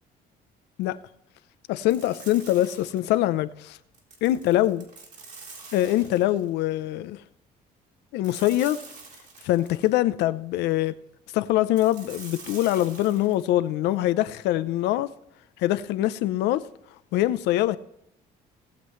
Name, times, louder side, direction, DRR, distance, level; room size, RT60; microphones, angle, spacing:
voice 1, 1.7-3.8 4.2-4.8 5.7-7.2 8.1-8.8 9.4-10.9 11.3-15.1 15.6-16.7 17.1-17.8, left 14 dB, 85° left, 0.7 m, -23 dB
sound 1, 1.9-3.3 3.9-6.5 8.2-10.0 11.8-13.5, right 4 dB, 45° right, 3.7 m, -46 dB
18.5 x 7.7 x 3.2 m
cardioid pair, 110°, 17 cm